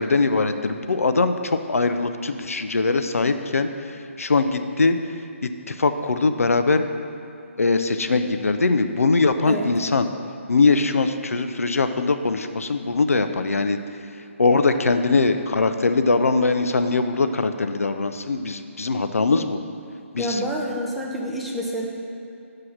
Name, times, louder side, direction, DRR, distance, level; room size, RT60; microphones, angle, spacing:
voice 1, 0.0-3.7 4.2-5.0 5.4-6.9 7.6-10.1 10.5-13.8 14.4-19.6 20.1-20.4, left 3 dB, 90° left, 8 dB, 0.5 m, -21 dB
voice 2, 20.2-21.8, equal, ahead, -5 dB, 0.6 m, -28 dB
7.2 x 4.7 x 6.3 m, 2.6 s
hypercardioid pair, 155°, 7 cm